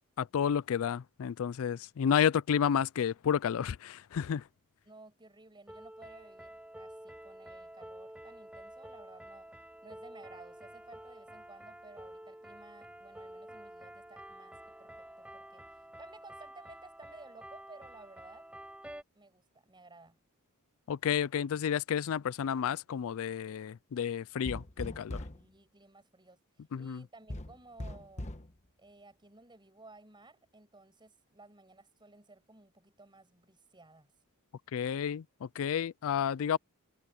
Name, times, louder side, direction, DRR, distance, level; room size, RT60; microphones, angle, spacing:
voice 1, 0.2-4.4 20.9-25.2 26.7-27.0 34.7-36.6, left 8 dB, 65° left, 0.4 m, -31 dB
voice 2, 4.8-9.5 9.8-18.5 19.1-20.2 25.3-26.4 26.8-28.3 28.8-34.1, right 2 dB, 20° right, 6.6 m, -56 dB
sound 1, 5.7-19.0, right 1 dB, 5° right, 4.8 m, -49 dB
sound 2, 24.4-25.5 27.3-28.5, left 1 dB, 30° left, 1.3 m, -40 dB
head